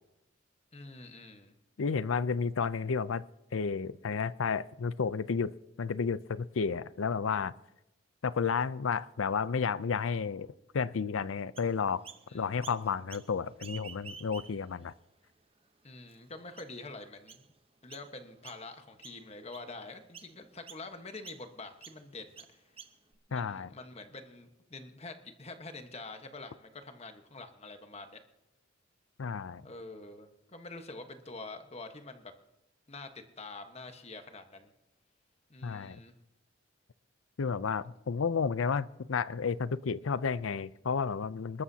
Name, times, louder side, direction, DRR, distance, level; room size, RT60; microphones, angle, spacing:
voice 1, 0.7-1.5 12.3-12.7 15.8-17.4 17.8-22.7 23.3-28.2 29.6-32.3 32.9-34.7 35.5-36.1, left 3 dB, 30° left, 1.3 m, -46 dB
voice 2, 1.8-3.2 3.5-5.5 5.8-7.5 8.2-10.5 10.7-12.0 12.3-14.9 23.3-23.7 29.2-29.6 35.6-36.0 37.4-41.6, left 5 dB, 85° left, 0.5 m, -31 dB
Chirp tweet, 11.6-12.2 12.6-13.3 13.6-14.8 15.3-15.4 16.1-16.2 16.6-16.9 17.3-17.5 17.9-18.1 18.4-18.8 19.0-19.7 20.1-20.3 20.7-20.8 21.2-21.4 21.8-22.0 22.4-23.1, right 6 dB, 30° right, 0.9 m, -49 dB
27.0 x 13.0 x 2.8 m
head